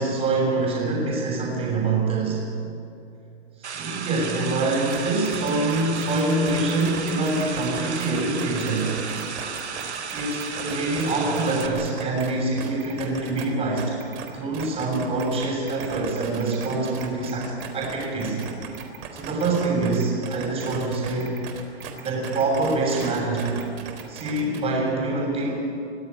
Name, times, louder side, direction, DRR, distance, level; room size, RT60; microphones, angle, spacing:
voice 1, 0.0-2.5 3.6-9.0 10.1-18.4 19.1-21.3 22.0-23.6 24.1-25.8, right 2 dB, 20° right, -3 dB, 6.4 m, -25 dB
sound 1, 3.6-11.7, right 6 dB, 85° right, 2.3 m, -34 dB
sound 2, 4.9-5.0 5.3-12.3 12.6-13.5 13.8-24.7, right 7 dB, 55° right, 3.9 m, -38 dB
24.0 x 16.5 x 8.7 m, 2.5 s
hypercardioid pair, 130°, 33 cm